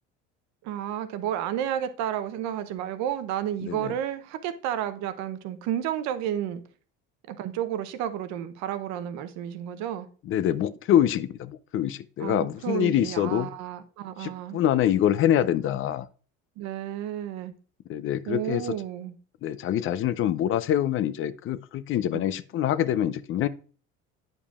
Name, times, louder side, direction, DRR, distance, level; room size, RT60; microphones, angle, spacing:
voice 1, 0.6-6.6 7.3-10.1 12.2-14.6 16.6-17.5 18.3-19.1 22.1-22.2, right 10 dB, 70° right, 0.7 m, -31 dB
voice 2, 3.6-3.9 10.2-13.5 14.2-16.1 17.9-18.7 19.4-23.5, left 11 dB, 45° left, 0.4 m, -25 dB
8.6 x 5.3 x 2.4 m
supercardioid pair, 90°, 29 cm